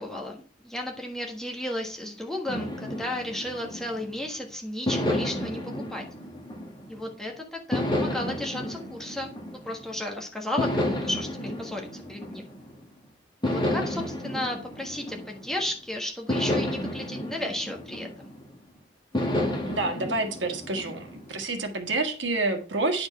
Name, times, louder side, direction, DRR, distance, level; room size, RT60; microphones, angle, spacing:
voice 1, 0.0-6.0 6.9-9.3 9.6-12.5 13.4-18.3, left 1 dB, 5° left, 0 dB, 1.4 m, -34 dB
sound 1, 2.5-4.3 4.9-7.1 7.7-10.0 10.6-12.8 13.4-15.7 16.3-18.5 19.1-21.4, left 1 dB, 25° left, 1.6 m, -31 dB
voice 2, 19.7-23.1, right 2 dB, 90° right, 4 dB, 1.5 m, -28 dB
9.6 x 4.4 x 5.5 m, 0.42 s
head